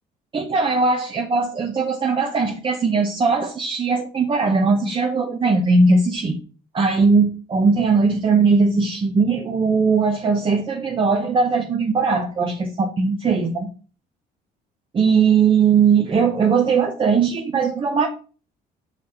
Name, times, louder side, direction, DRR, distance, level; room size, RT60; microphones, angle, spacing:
voice 1, 0.3-6.4 6.7-13.7 14.9-18.1, right 4 dB, 30° right, 4 dB, 0.8 m, -19 dB
6.2 x 4.0 x 4.3 m, 0.38 s
cardioid pair, 110°, 17 cm